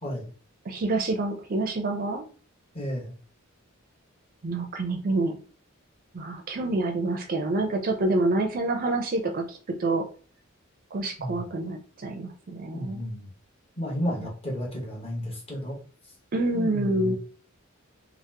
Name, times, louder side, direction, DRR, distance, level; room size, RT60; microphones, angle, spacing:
voice 1, 0.7-2.3 4.4-5.3 6.1-10.0 10.9-13.0 16.3-17.2, right 2 dB, 45° right, 4 dB, 0.4 m, -27 dB
voice 2, 2.7-3.1 11.2-11.4 12.7-13.3 13.8-15.8 16.5-17.2, equal, 30° left, -2 dB, 1.0 m, -32 dB
2.9 x 2.1 x 3.3 m, 0.39 s
head